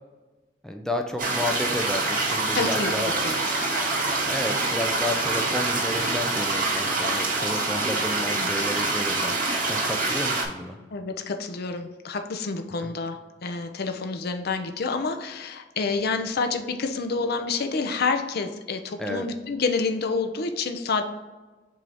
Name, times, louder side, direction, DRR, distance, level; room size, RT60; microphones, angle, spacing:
voice 1, 0.6-3.1 4.3-10.8 12.8-12.9 19.0-19.3, left 1 dB, 5° left, 4 dB, 0.4 m, -31 dB
sound 1, 1.2-10.4, right 3 dB, 50° right, 1.7 m, -25 dB
voice 2, 2.5-2.9 3.2-3.3 8.4-8.5 10.9-21.0, left 4 dB, 55° left, 6 dB, 0.6 m, -28 dB
7.5 x 2.7 x 4.8 m, 1.2 s
head